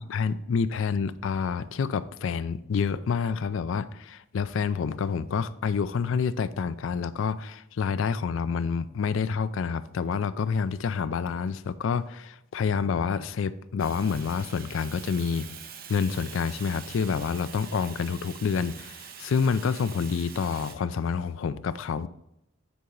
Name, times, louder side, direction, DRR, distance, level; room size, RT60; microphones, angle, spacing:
voice 1, 0.0-15.5 15.9-22.1, left 6 dB, 70° left, 15 dB, 0.4 m, -28 dB
Fire, 13.8-20.7, right 7 dB, 45° right, 0.7 m, -44 dB
9.4 x 4.1 x 3.8 m, 0.83 s
head